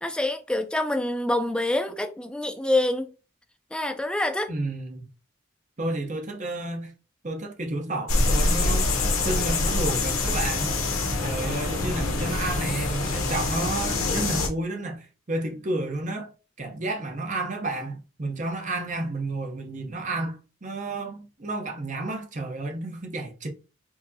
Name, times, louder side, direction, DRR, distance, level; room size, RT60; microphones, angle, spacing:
voice 1, 0.0-3.1 3.7-4.5, left 1 dB, 5° left, 0.3 m, -26 dB
voice 2, 4.5-5.1 5.8-6.9 7.2-8.9 9.2-10.8 11.2-16.3 16.6-23.5, right 2 dB, 35° right, 0.8 m, -31 dB
sound 1, 8.1-14.5, left 3 dB, 85° left, 0.9 m, -25 dB
4.6 x 2.7 x 2.7 m
head